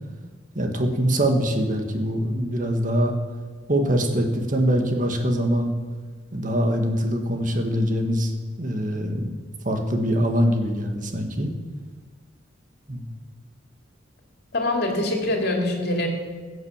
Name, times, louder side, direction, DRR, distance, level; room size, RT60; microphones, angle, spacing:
voice 1, 0.6-3.2 3.7-5.7 6.3-8.3 8.6-9.4 9.7-11.5 12.9-13.0, equal, 45° right, 4 dB, 1.8 m, -23 dB
voice 2, 14.5-16.1, left 1 dB, 60° left, 2 dB, 2.8 m, -24 dB
16.0 x 8.1 x 7.3 m, 1.5 s
head